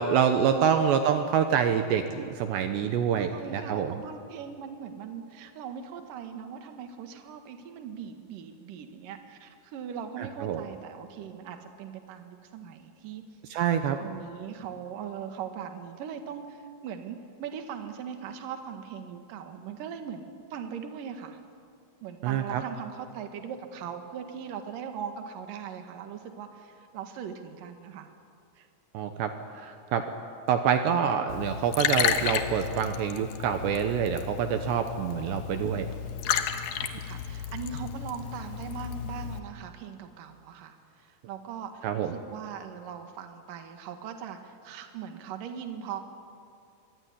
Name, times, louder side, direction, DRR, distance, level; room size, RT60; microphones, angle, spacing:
voice 1, 0.0-4.0 10.2-10.7 13.5-14.0 22.2-22.6 28.9-30.0 30.5-35.9 41.8-42.1, right 8 dB, 75° right, 7 dB, 2.8 m, -26 dB
voice 2, 3.1-13.2 14.0-21.4 22.0-28.1 28.6-28.7 36.9-46.0, right 7 dB, 55° right, 6 dB, 2.7 m, -40 dB
Liquid, 31.3-39.4, left 9 dB, 70° left, 2.3 m, -32 dB
25.0 x 23.0 x 9.8 m, 2.4 s
omnidirectional pair, 5.8 m